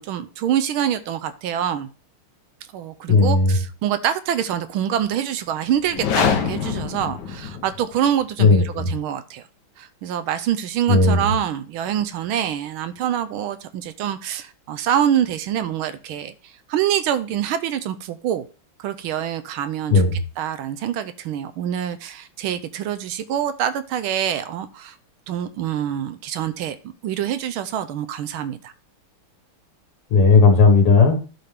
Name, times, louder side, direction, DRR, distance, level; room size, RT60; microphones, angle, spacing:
voice 1, 0.0-1.9 2.7-9.4 9.8-18.5 18.8-20.0 20.4-25.0 25.3-28.7, right 10 dB, 80° right, 1.4 m, -25 dB
voice 2, 3.1-3.6 8.4-8.9 10.9-11.3 19.9-20.2 30.1-31.2, left 4 dB, 80° left, 2.5 m, -15 dB
sound 1, 5.8-8.0, left 6 dB, 60° left, 1.4 m, -24 dB
11.5 x 4.1 x 3.4 m
omnidirectional pair, 2.4 m